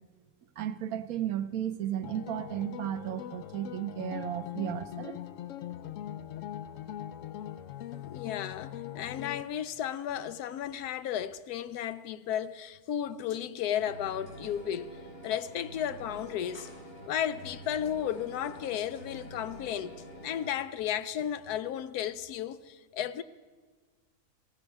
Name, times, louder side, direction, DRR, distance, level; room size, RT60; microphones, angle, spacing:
voice 1, 0.6-5.2, right 11 dB, 75° right, 1.1 m, -34 dB
sound 1, 2.0-9.4, left 11 dB, 65° left, 0.8 m, -41 dB
voice 2, 8.1-15.0 15.2-16.7 17.1-23.2, left 10 dB, 85° left, 1.1 m, -34 dB
sound 2, 11.1-11.9 12.2-13.2 13.5-13.8 14.3-14.8 15.1-15.5 15.8-15.9 16.2-17.0 17.5-19.7 20.1-20.7, equal, 5° left, 3.4 m, -61 dB
sound 3, 13.8-20.5, right 1 dB, 40° left, 1.5 m, -47 dB
16.0 x 15.0 x 4.7 m
omnidirectional pair, 1.6 m